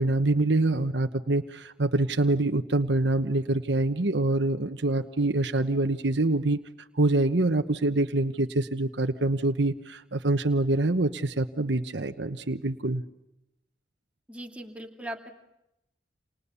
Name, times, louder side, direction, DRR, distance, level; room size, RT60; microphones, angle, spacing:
voice 1, 0.0-6.6 6.9-13.0, right 2 dB, 75° right, 7 dB, 1.2 m, -25 dB
voice 2, 14.3-15.3, right 1 dB, 5° right, 2 dB, 2.5 m, -39 dB
29.5 x 28.0 x 7.1 m, 0.87 s
head